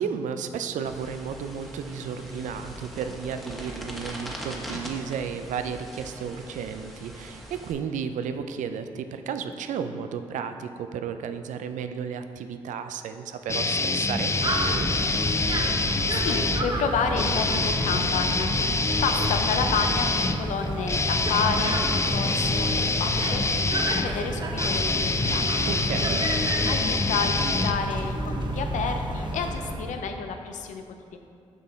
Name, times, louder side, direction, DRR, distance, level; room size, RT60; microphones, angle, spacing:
voice 1, 0.0-14.9 19.2-19.3 25.7-26.2, right 7 dB, 70° right, 9 dB, 0.4 m, -33 dB
sound 1, 0.8-7.7, equal, ahead, 1.4 m, -41 dB
sound 2, 13.5-16.7 17.1-28.3, left 3 dB, 20° left, 0.5 m, -26 dB
sound 3, 14.3-29.8, right 1 dB, 35° right, 1.1 m, -31 dB
voice 2, 16.2-25.5 26.6-30.8 31.1-31.2, left 5 dB, 70° left, 5 dB, 0.6 m, -30 dB
7.5 x 5.5 x 3.5 m, 2.4 s
hypercardioid pair, 45°, 13 cm